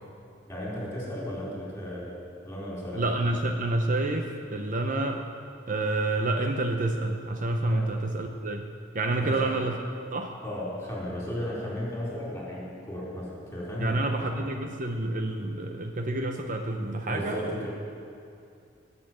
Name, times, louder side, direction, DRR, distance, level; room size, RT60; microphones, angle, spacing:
voice 1, 0.5-2.2 2.4-3.0 7.7-7.9 9.2-9.5 10.4-14.1 17.0-17.7, equal, 15° left, -5 dB, 4.5 m, -35 dB
voice 2, 2.9-5.2 5.7-8.7 8.9-9.8 10.1-10.3 13.8-17.7, right 2 dB, 45° right, 4 dB, 0.8 m, -28 dB
19.0 x 7.0 x 7.7 m, 2.5 s
head